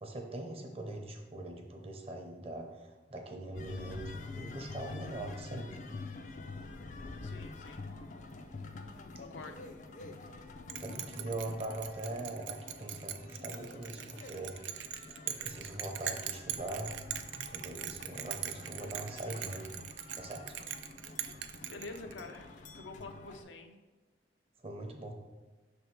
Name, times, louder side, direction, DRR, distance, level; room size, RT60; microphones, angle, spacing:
voice 1, 0.0-5.8 10.8-14.6 15.3-17.0 17.3-19.7 20.1-20.6 24.6-25.1, right 2 dB, 30° right, 3 dB, 0.7 m, -42 dB
sound 1, 3.5-23.4, left 3 dB, 40° left, 0.4 m, -47 dB
voice 2, 7.2-7.8 9.2-9.7 21.7-23.8, left 3 dB, 90° left, 5 dB, 0.7 m, -47 dB
Bell, 10.7-22.4, right 11 dB, 90° right, 0.4 m, -41 dB
6.0 x 3.5 x 4.5 m, 1.2 s
head